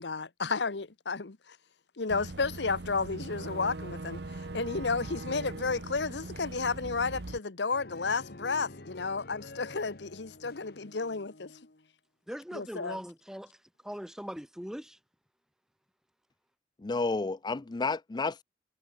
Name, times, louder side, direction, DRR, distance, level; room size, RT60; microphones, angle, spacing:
voice 1, 0.0-1.6 2.0-11.5 12.5-13.0, left 4 dB, 80° left, 1.1 m, -32 dB
Boat Water vehicle / Engine, 2.1-7.4, right 2 dB, 65° right, 1.0 m, -41 dB
sound 1, 7.7-11.9, left 2 dB, 60° left, 1.9 m, -49 dB
voice 2, 12.3-13.6 13.8-15.0, equal, 5° right, 1.1 m, -40 dB
voice 3, 16.8-18.4, left 3 dB, 25° left, 0.4 m, -31 dB
head